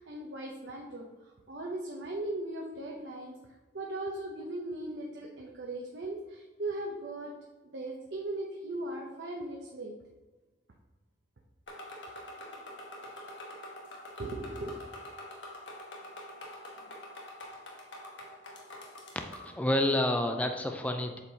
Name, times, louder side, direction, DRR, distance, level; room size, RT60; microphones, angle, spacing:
voice 1, 0.0-3.4 3.7-7.3 7.6-9.9 14.2-14.7, right 2 dB, 65° right, -1 dB, 0.7 m, -38 dB
sound 1, 11.7-19.6, left 1 dB, 80° left, 1.2 m, -46 dB
voice 2, 19.2-21.2, left 1 dB, 10° left, 4 dB, 0.4 m, -29 dB
7.8 x 4.4 x 2.8 m, 1.2 s
head